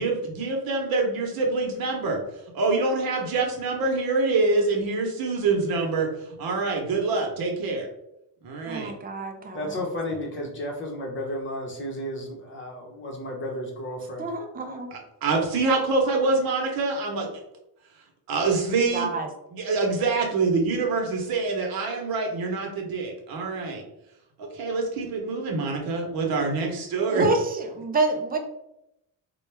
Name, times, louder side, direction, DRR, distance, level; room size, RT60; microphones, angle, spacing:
voice 1, 0.0-2.2 2.5-6.1 6.4-7.9 8.4-8.9 14.9-17.3 18.3-19.1 19.5-23.8 24.4-27.3, right 3 dB, 60° right, 1 dB, 1.0 m, -25 dB
voice 2, 8.7-9.6 14.2-14.9 18.9-19.3 27.0-28.4, right 3 dB, 25° right, 5 dB, 0.4 m, -27 dB
voice 3, 9.5-14.3, left 1 dB, 30° left, 0 dB, 0.8 m, -33 dB
4.1 x 2.3 x 3.3 m, 0.85 s
cardioid pair, 155°, 41 cm